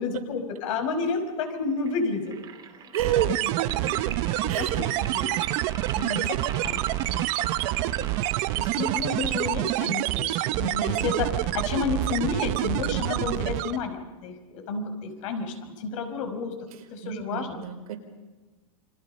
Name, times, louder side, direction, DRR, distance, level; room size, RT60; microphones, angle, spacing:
voice 1, 0.0-2.4 2.9-3.0 3.2-3.5 4.4-6.4 6.6-7.3 7.5-16.6 16.9-17.6, left 5 dB, 60° left, 6 dB, 5.5 m, -31 dB
sound 1, 1.7-10.7, right 7 dB, 20° right, 2.6 m, -42 dB
voice 2, 2.9-4.2 4.5-4.9 17.0-18.0, right 10 dB, 85° right, 4 dB, 4.4 m, -30 dB
sound 2, 3.0-13.9, right 16 dB, 40° right, 0.9 m, -27 dB
29.0 x 24.0 x 5.6 m, 1.2 s
supercardioid pair, 150°, 18 cm